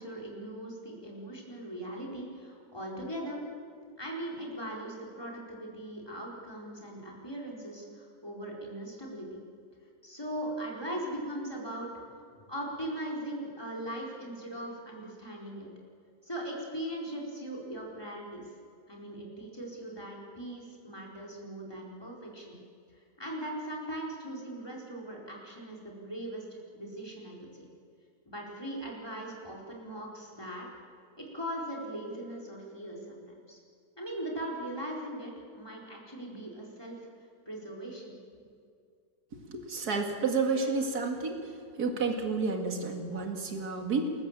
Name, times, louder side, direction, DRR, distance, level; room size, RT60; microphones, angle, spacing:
voice 1, 0.0-3.4 4.0-9.3 10.0-15.7 16.2-18.4 18.9-22.6 22.9-27.6 28.3-30.7 31.2-33.6 34.0-37.0 37.5-38.2, right 1 dB, 15° left, -2 dB, 4.5 m, -40 dB
voice 2, 39.5-41.4 41.8-44.1, right 4 dB, 60° right, 4 dB, 2.6 m, -30 dB
28.5 x 14.0 x 7.5 m, 2.3 s
omnidirectional pair, 1.9 m